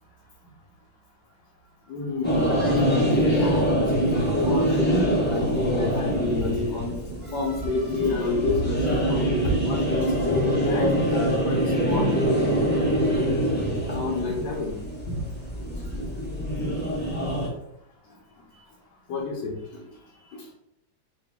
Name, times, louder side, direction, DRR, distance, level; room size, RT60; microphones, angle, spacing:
voice 1, 1.9-7.0 7.3-11.6 11.8-12.5 13.0-13.3 13.9-14.8 15.1-15.3 15.8-15.9 19.1-19.8 20.3-20.5, left 3 dB, 75° left, -3 dB, 1.4 m, -29 dB
sound 1, 2.2-17.5, right 1 dB, 10° left, 0.6 m, -24 dB
sound 2, 7.2-13.3, left 2 dB, 65° right, 0.4 m, -36 dB
3.9 x 2.4 x 3.5 m, 0.78 s
omnidirectional pair, 2.0 m